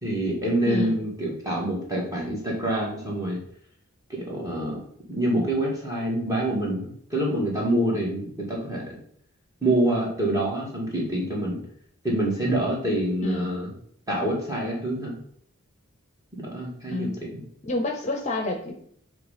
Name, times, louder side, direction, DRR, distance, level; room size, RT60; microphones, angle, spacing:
voice 1, 0.0-3.4 4.1-4.8 5.1-9.0 9.6-11.6 12.0-13.7 14.1-15.1 16.3-17.4, right 1 dB, 15° right, -3 dB, 2.0 m, -26 dB
voice 2, 0.7-1.0 13.2-13.5 16.9-17.2 17.6-18.7, left 2 dB, 35° left, 3 dB, 0.8 m, -28 dB
7.6 x 3.3 x 5.1 m, 0.65 s
head